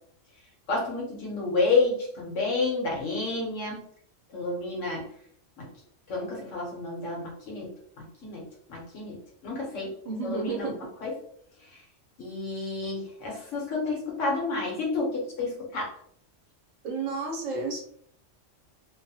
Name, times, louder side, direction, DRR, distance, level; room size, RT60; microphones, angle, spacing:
voice 1, 0.7-3.8 4.3-5.1 5.6-5.7 6.1-7.7 8.2-9.9 10.2-10.7 11.0-11.1 12.2-15.9, left 3 dB, 75° left, -2 dB, 1.3 m, -30 dB
voice 2, 10.0-10.8 16.8-17.8, right 4 dB, 90° right, -1 dB, 1.2 m, -31 dB
3.0 x 2.2 x 2.7 m, 0.65 s
omnidirectional pair, 1.3 m